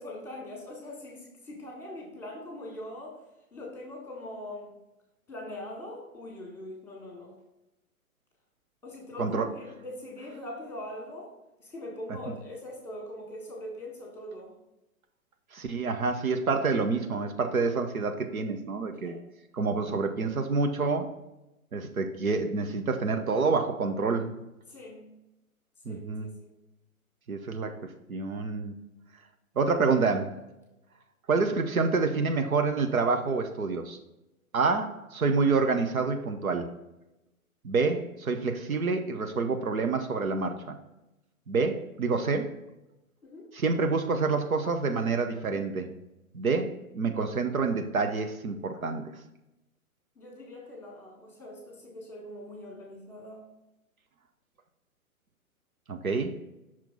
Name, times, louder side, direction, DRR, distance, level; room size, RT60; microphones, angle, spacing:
voice 1, 0.0-3.2 3.5-4.7 5.3-7.4 8.8-11.3 11.6-14.5 19.0-19.2 24.7-25.1 25.8-26.5 43.2-43.5 50.1-53.4, left 1 dB, 5° left, -1 dB, 1.6 m, -42 dB
voice 2, 15.5-19.2 19.5-21.1 21.7-24.4 25.9-26.3 27.3-27.7 28.1-28.7 29.6-30.4 31.3-34.0 34.5-36.7 37.6-40.8 41.5-42.5 43.5-45.9 46.3-49.0 55.9-56.3, right 4 dB, 70° right, 6 dB, 0.9 m, -27 dB
6.0 x 4.5 x 3.8 m, 0.94 s
figure-of-eight pair, 120°, 44 cm